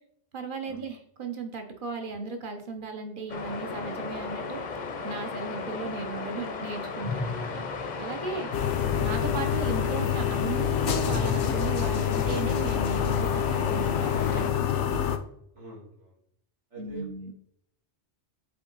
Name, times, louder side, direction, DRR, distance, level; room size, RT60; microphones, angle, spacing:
voice 1, 0.3-7.5 8.0-8.5 9.0-15.0 16.8-17.3, right 4 dB, 50° right, 5 dB, 1.0 m, -36 dB
sound 1, 3.3-14.5, left 4 dB, 45° left, 0.7 m, -36 dB
sound 2, 7.0-13.2, left 4 dB, 15° left, 0.3 m, -39 dB
sound 3, 8.5-15.2, left 9 dB, 80° left, 0.9 m, -27 dB
voice 2, 15.5-16.2 16.7-17.1, equal, 85° right, -4 dB, 2.9 m, -46 dB
7.5 x 3.6 x 3.9 m, 0.68 s
omnidirectional pair, 1.2 m